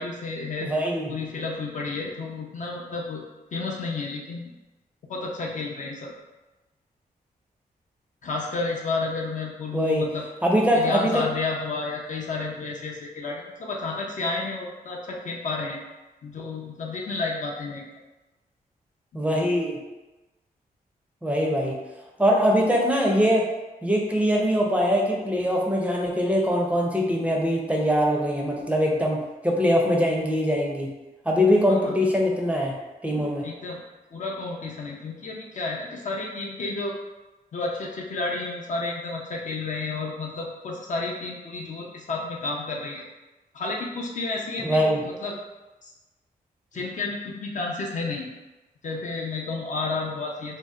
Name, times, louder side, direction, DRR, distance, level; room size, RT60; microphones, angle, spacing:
voice 1, 0.0-0.7 1.1-3.2 3.5-4.5 5.1-6.1 8.2-10.2 10.7-15.8 16.2-17.8 31.7-31.9 33.1-33.8 34.1-36.9 37.5-43.0 43.5-45.4 45.8-45.9 46.7-48.3 48.8-50.6, left 3 dB, 50° left, -1 dB, 0.5 m, -31 dB
voice 2, 0.6-1.1 9.7-10.0 10.4-11.2 19.1-19.8 21.2-21.7 22.2-23.5 23.8-30.9 31.3-32.7 33.0-33.4 44.6-45.0, equal, 10° right, -2 dB, 0.5 m, -22 dB
2.6 x 2.0 x 2.3 m, 1.1 s
cardioid pair, 60°, 16 cm